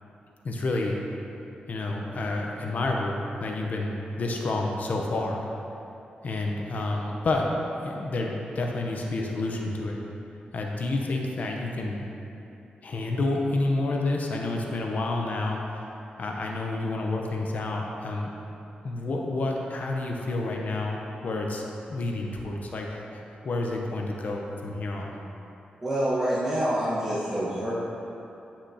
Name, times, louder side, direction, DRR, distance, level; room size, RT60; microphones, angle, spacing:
voice 1, 0.4-1.0 1.7-5.5 6.2-7.5 7.8-10.0 10.5-12.0 12.8-15.8 16.2-18.3 18.8-21.6 21.9-25.1, left 2 dB, 55° left, 0 dB, 0.8 m, -29 dB
voice 2, 25.8-27.7, right 1 dB, 15° right, -10 dB, 1.3 m, -26 dB
9.7 x 5.8 x 2.8 m, 2.9 s
wide cardioid pair, 105°, 3 cm